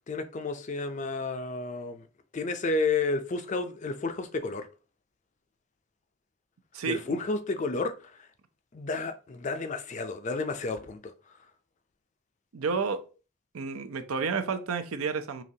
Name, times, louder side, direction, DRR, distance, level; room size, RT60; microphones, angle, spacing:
voice 1, 0.1-2.0 2.3-4.7 6.8-8.1 8.7-11.1, left 3 dB, 35° left, 0.4 m, -31 dB
voice 2, 6.7-7.2 12.5-13.0 13.5-15.4, right 5 dB, 80° right, 0.5 m, -31 dB
5.1 x 2.9 x 2.7 m
head